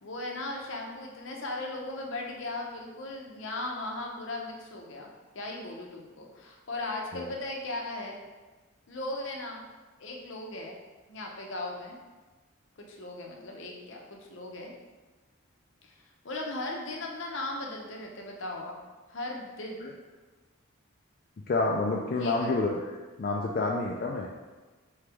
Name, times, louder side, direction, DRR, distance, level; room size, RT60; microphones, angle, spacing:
voice 1, 0.0-8.2 8.9-9.7 10.0-10.8 11.1-12.0 12.8-14.7 15.8-15.9 16.2-18.8 19.1-19.8 22.2-22.6, left 2 dB, 70° left, 0 dB, 0.7 m, -37 dB
voice 2, 21.5-22.7 23.2-24.3, left 3 dB, 45° left, -2 dB, 0.3 m, -28 dB
3.8 x 3.2 x 3.4 m, 1.3 s
head